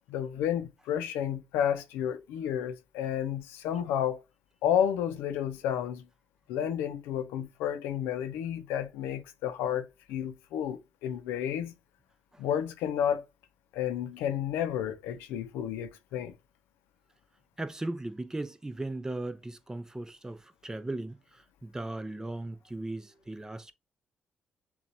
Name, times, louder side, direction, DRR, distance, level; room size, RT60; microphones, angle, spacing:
voice 1, 0.1-4.2 4.6-6.0 6.5-11.7 12.4-13.2 13.7-16.3, left 9 dB, 90° left, 0.5 m, -31 dB
voice 2, 17.6-23.7, right 2 dB, 15° right, 0.7 m, -37 dB
6.8 x 2.4 x 2.8 m
supercardioid pair, 60°, 4 cm